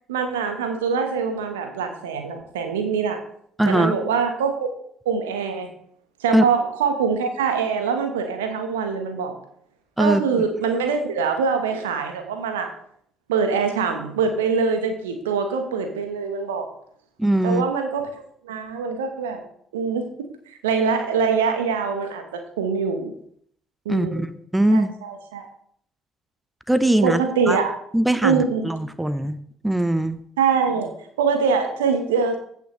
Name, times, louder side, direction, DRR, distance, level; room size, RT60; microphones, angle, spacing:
voice 1, 0.1-3.2 3.7-4.7 5.0-5.7 6.2-9.4 10.0-12.7 13.3-16.7 17.4-19.4 19.7-20.0 20.5-23.1 23.8-24.3 24.7-25.5 27.0-27.7 28.2-28.7 30.4-32.4, right 5 dB, 75° right, 6 dB, 1.1 m, -24 dB
voice 2, 3.6-3.9 6.3-6.4 10.0-10.2 17.2-17.6 23.9-24.3 24.5-24.9 26.7-27.2 27.5-27.6 27.9-29.4 29.6-30.2, right 1 dB, 10° right, 12 dB, 0.7 m, -20 dB
15.0 x 5.6 x 3.2 m, 0.66 s
figure-of-eight pair, 50°, 0 cm